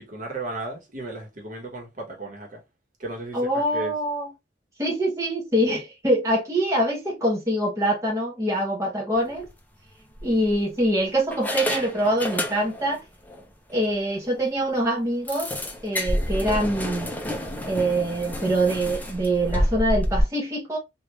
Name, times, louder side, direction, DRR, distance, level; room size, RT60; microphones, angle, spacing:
voice 1, 0.0-2.6 3.0-3.9, right 1 dB, 45° right, 1.2 m, -35 dB
voice 2, 3.3-4.3 4.8-9.5 10.2-13.0 13.7-15.5 15.8-17.1 17.6-20.8, right 1 dB, 15° right, 0.9 m, -24 dB
sound 1, 9.3-9.5 10.2-10.8 11.3-13.0 13.3-13.4 13.8-13.9 14.3-14.4 15.3-20.2, equal, 10° left, 0.6 m, -29 dB
3.4 x 2.5 x 2.9 m
head